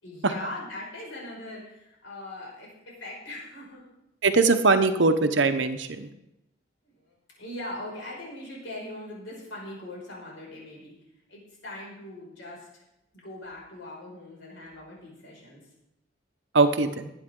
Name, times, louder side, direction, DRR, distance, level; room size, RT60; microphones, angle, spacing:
voice 1, 0.0-3.8 6.8-10.9 11.3-12.8 13.1-15.6, left 1 dB, 75° left, -3 dB, 5.8 m, -41 dB
voice 2, 4.2-6.1 16.5-17.1, right 3 dB, 65° right, 9 dB, 0.9 m, -21 dB
19.5 x 8.8 x 3.8 m, 0.88 s
head